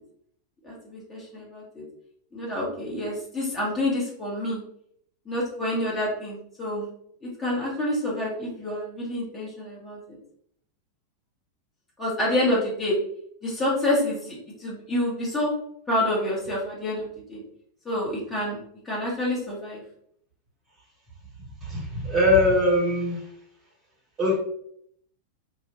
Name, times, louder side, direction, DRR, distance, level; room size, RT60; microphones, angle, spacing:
voice 1, 0.6-1.8 2.3-4.6 5.2-6.9 7.2-10.2 12.0-13.0 13.4-15.5 15.9-17.4 17.8-19.8, left 1 dB, 15° left, -6 dB, 1.2 m, -28 dB
voice 2, 21.6-23.2 24.2-24.4, left 1 dB, 20° right, -2 dB, 1.0 m, -21 dB
2.7 x 2.2 x 2.9 m, 0.68 s
figure-of-eight pair, 90°, 0 cm